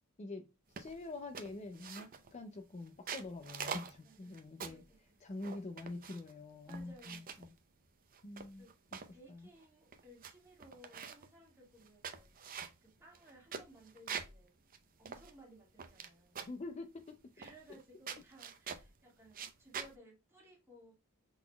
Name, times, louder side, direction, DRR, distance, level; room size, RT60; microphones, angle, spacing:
voice 1, 0.8-4.8 5.2-7.2 8.2-8.7 9.3-9.5 16.5-17.2, left 2 dB, 30° left, 0.5 m, -45 dB
sound 1, 0.8-1.0 1.3-2.3 2.9-4.9 5.4-6.3 6.7-7.5 8.1-9.1 9.6-9.7 9.9-10.3 10.6-11.3 11.8-14.4 14.7-14.8 15.1-16.1 16.3-16.6 17.4-17.8 18.1-18.9 19.3-19.9, right 6 dB, 40° right, 0.6 m, -45 dB
voice 2, 4.0-5.2 6.7-7.5 8.6-8.7 9.1-14.6 15.0-16.5 17.3-20.9, right 1 dB, 10° right, 1.9 m, -60 dB
5.8 x 3.9 x 2.3 m
head